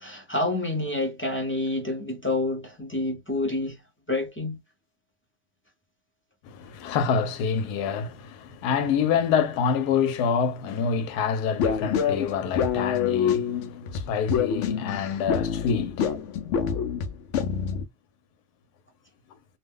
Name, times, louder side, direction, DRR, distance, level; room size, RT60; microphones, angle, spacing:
voice 1, 0.0-3.7 4.1-4.6, left 2 dB, 15° left, 0.5 m, -28 dB
voice 2, 6.4-16.5, left 6 dB, 90° left, 1.2 m, -27 dB
sound 1, 11.6-17.8, left 7 dB, 70° left, 0.7 m, -26 dB
2.6 x 2.2 x 3.5 m
omnidirectional pair, 1.6 m